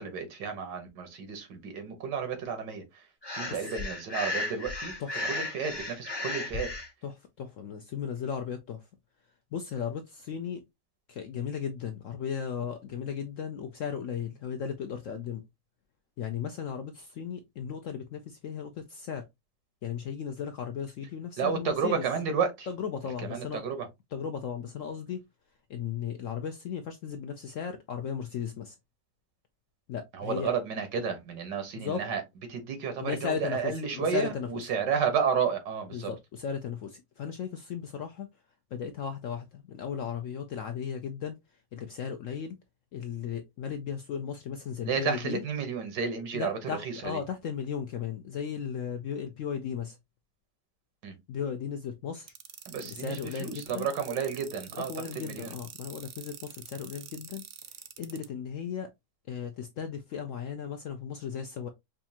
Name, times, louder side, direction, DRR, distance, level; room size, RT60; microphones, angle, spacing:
voice 1, 0.0-2.8 3.3-4.9 5.3-6.7 21.4-22.7 23.2-23.9 30.1-32.2 32.5-36.1 44.8-47.2 51.0-51.2 52.7-54.9 55.2-55.5, right 6 dB, 90° right, 1.7 m, -31 dB
Breathing, 3.2-6.9, left 2 dB, 30° left, 0.5 m, -34 dB
voice 2, 7.0-8.8 9.5-10.6 11.1-15.4 16.2-19.3 19.8-22.0 22.7-23.6 24.1-25.2 25.7-28.8 29.9-30.5 31.7-32.0 33.0-34.6 35.9-38.3 38.7-41.4 41.7-42.6 42.9-45.4 46.3-50.0 51.3-52.3 52.8-53.9 54.9-57.4 58.0-58.9 59.3-61.7, left 7 dB, 70° left, 0.7 m, -36 dB
sound 1, 52.3-58.3, right 9 dB, 70° right, 0.6 m, -45 dB
5.2 x 2.4 x 2.7 m
omnidirectional pair, 1.8 m